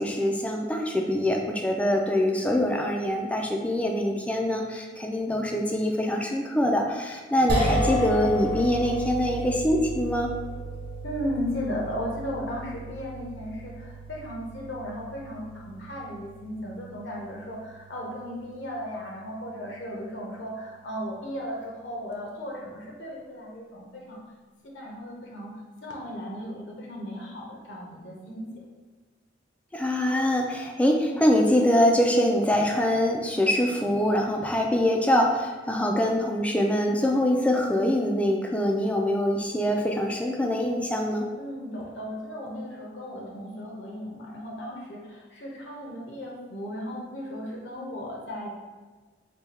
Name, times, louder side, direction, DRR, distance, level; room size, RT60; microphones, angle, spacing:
voice 1, 0.0-10.3 29.7-41.3, left 1 dB, 5° left, 1 dB, 0.3 m, -24 dB
sound 1, 7.5-19.8, equal, 55° right, 1.0 m, -33 dB
voice 2, 11.0-24.2 24.7-25.5 25.8-28.6 41.4-48.5, equal, 70° left, -2 dB, 0.8 m, -36 dB
3.4 x 2.2 x 4.2 m, 1.4 s
head